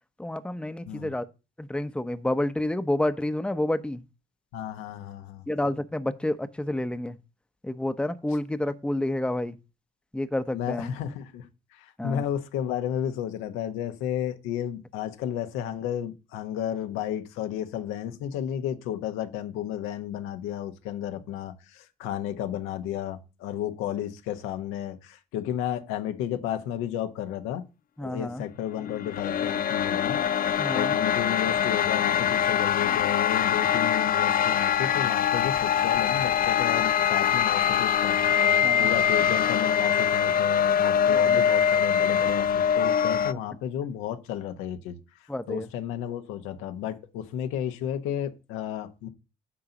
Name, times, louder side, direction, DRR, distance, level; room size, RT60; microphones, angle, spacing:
voice 1, 0.2-1.3 1.6-4.0 5.5-7.2 7.6-9.6 10.1-10.9 12.0-12.2 28.0-28.4 30.6-31.0 38.6-38.9 41.1-41.4 43.3-43.4 45.3-45.7, left 1 dB, 5° left, 1.0 m, -29 dB
voice 2, 4.5-5.5 10.5-27.6 28.0-38.5 38.8-49.1, left 10 dB, 75° left, 1.2 m, -33 dB
sound 1, 28.8-43.3, left 8 dB, 45° left, 0.5 m, -23 dB
10.0 x 3.8 x 7.2 m
hypercardioid pair, 55°, 21 cm